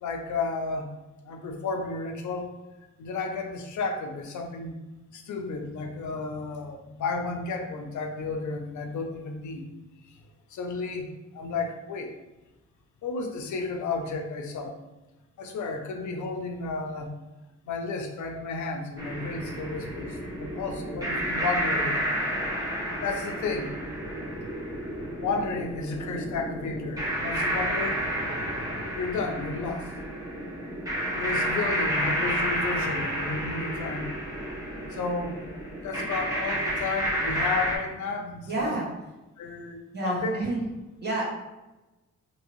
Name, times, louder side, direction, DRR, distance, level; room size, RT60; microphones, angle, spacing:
voice 1, 0.0-0.9 1.2-2.5 3.0-4.7 5.1-9.7 10.1-10.2 10.5-12.1 13.0-14.7 15.4-17.1 17.7-22.1 23.0-23.8 25.2-28.0 28.9-29.9 31.1-34.2 34.9-35.4 35.8-38.8 39.4-40.4, left 4 dB, 80° left, 4 dB, 0.5 m, -32 dB
sound 1, 19.0-37.8, equal, 10° right, 0.8 m, -30 dB
voice 2, 38.5-38.9 39.9-40.6 41.0-41.2, right 2 dB, 35° right, -4 dB, 1.0 m, -29 dB
2.8 x 2.6 x 2.9 m, 1.1 s
wide cardioid pair, 115°, 29 cm